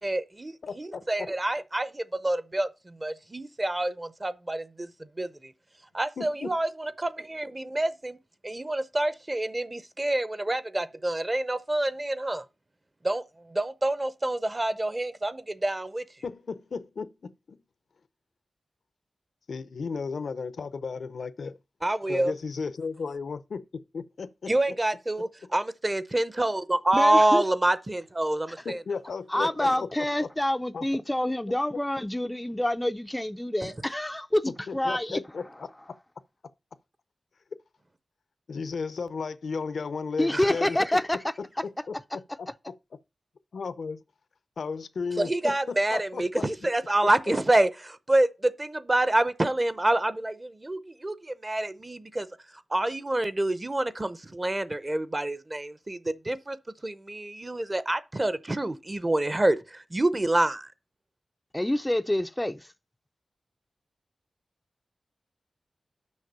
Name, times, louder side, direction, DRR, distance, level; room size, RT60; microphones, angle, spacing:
voice 1, 0.0-5.5 5.9-8.2 8.4-12.4 13.0-16.0 21.8-22.3 24.5-28.8 40.3-40.4 45.2-52.3 52.7-56.6 56.8-60.7, right 1 dB, 25° right, 0.6 m, -27 dB
voice 2, 0.6-1.3 6.2-6.5 16.2-17.6 19.5-21.6 22.1-24.5 28.6-29.9 30.2-30.3 30.7-30.8 34.7-35.5 38.5-40.8 41.9-42.2 43.5-44.0 44.6-46.4, left 5 dB, 85° left, 0.6 m, -34 dB
voice 3, 26.9-27.5 28.6-28.7 29.3-35.6 40.2-42.5 61.5-62.7, left 1 dB, 10° left, 0.3 m, -28 dB
6.4 x 5.1 x 6.6 m
wide cardioid pair, 110°, 0 cm